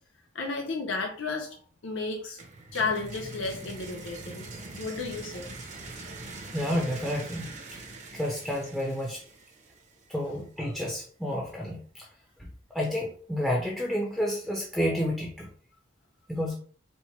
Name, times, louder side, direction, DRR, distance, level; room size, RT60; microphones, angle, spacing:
voice 1, 0.3-1.6 1.8-2.4 2.7-4.5 4.8-5.5, left 3 dB, 70° left, 1 dB, 0.7 m, -32 dB
sound 1, 2.4-10.2, right 2 dB, 35° right, 0.7 m, -43 dB
voice 2, 6.5-7.5 8.1-9.2 10.1-12.1 12.7-15.5 16.3-16.6, equal, ahead, -3 dB, 0.5 m, -30 dB
4.3 x 2.1 x 4.4 m, 0.44 s
head